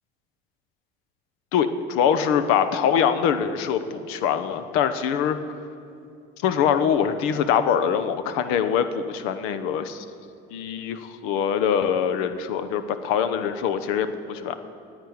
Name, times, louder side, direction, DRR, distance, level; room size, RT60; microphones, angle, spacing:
voice 1, 1.5-5.4 6.4-10.0 10.5-14.6, left 8 dB, 85° left, 11 dB, 1.0 m, -23 dB
10.5 x 8.7 x 9.5 m, 2.6 s
cardioid pair, 150°, 21 cm